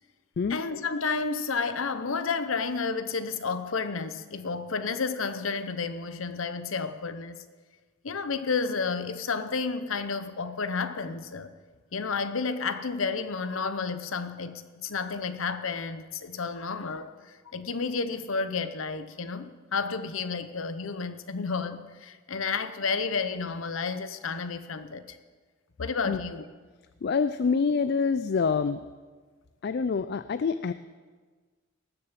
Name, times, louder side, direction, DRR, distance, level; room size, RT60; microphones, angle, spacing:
voice 1, 0.5-7.4 8.0-11.5 11.9-25.2 25.8-26.5, left 4 dB, 80° left, 11 dB, 0.9 m, -31 dB
voice 2, 27.0-28.8 29.6-30.7, left 5 dB, 50° left, 13 dB, 0.4 m, -26 dB
19.0 x 6.9 x 7.4 m, 1.4 s
head